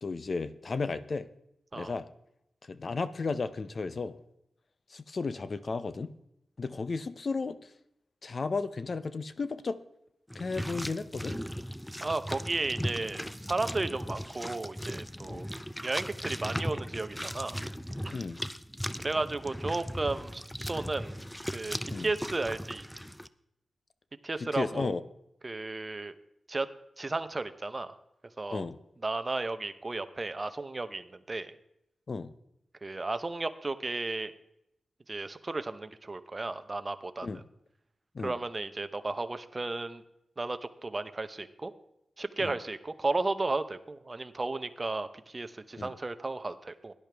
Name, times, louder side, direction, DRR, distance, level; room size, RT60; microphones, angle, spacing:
voice 1, 0.0-1.3 1.7-2.1 2.7-4.2 4.9-6.1 6.6-7.6 8.2-9.8 10.3-11.4 15.2-15.4 18.1-18.4 21.9-22.1 24.4-25.0 28.5-28.8 32.1-32.3 37.2-37.4 38.1-38.3 42.4-42.6 45.8-45.9, left 4 dB, 45° left, 13 dB, 0.6 m, -34 dB
sound 1, 10.3-23.3, equal, 5° left, 0.4 m, -38 dB
voice 2, 12.0-15.5 15.8-17.6 18.0-18.1 19.0-21.1 21.5-22.8 24.2-24.9 25.4-26.1 26.5-26.7 27.0-28.0 28.4-28.6 29.0-31.5 32.8-34.3 35.1-37.3 38.2-40.0 40.4-41.7 42.2-46.9, right 3 dB, 30° right, 11 dB, 0.7 m, -34 dB
17.0 x 11.0 x 3.4 m, 0.82 s
wide cardioid pair, 95°, 0 cm